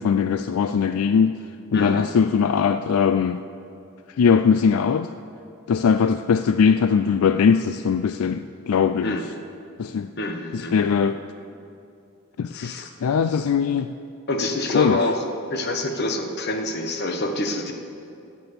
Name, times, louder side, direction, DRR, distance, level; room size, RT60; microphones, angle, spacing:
voice 1, 0.0-1.3 1.7-3.4 4.2-5.1 5.7-9.2 9.8-10.1 10.5-11.2 12.4-13.9 14.7-15.0, left 6 dB, 80° left, 10 dB, 0.4 m, -20 dB
voice 2, 1.7-2.2 9.0-9.3 10.2-10.9 12.5-12.9 14.3-17.7, left 1 dB, 45° left, 5 dB, 1.1 m, -27 dB
16.5 x 6.1 x 8.3 m, 2.5 s
head